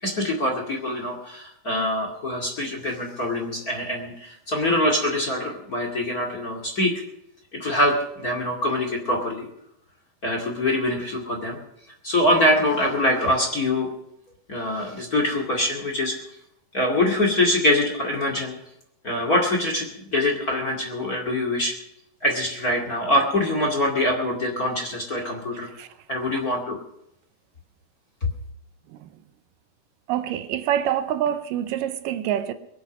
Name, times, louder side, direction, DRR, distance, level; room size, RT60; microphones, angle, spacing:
voice 1, 0.0-6.9 7.5-9.5 10.2-11.6 12.0-13.9 14.5-16.2 16.7-18.5 19.0-21.7 22.2-25.7 26.1-26.8, left 1 dB, 30° left, 2.3 m, -24 dB
voice 2, 30.1-32.5, right 10 dB, 85° right, 2.5 m, -26 dB
22.0 x 8.2 x 6.2 m
omnidirectional pair, 3.8 m